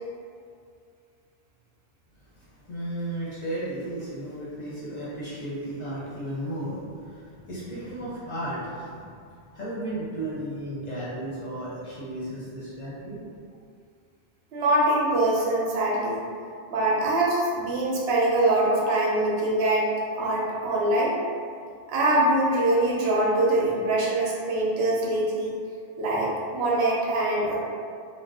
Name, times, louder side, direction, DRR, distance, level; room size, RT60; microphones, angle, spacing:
voice 1, 2.4-9.1 9.5-13.2, right 1 dB, 45° left, -8 dB, 0.7 m, -34 dB
voice 2, 14.5-16.2 16.7-19.9 20.1-21.1 21.9-25.6 26.0-27.6, right 1 dB, 75° right, -4 dB, 0.9 m, -23 dB
2.4 x 2.1 x 3.5 m, 2.3 s
omnidirectional pair, 1.1 m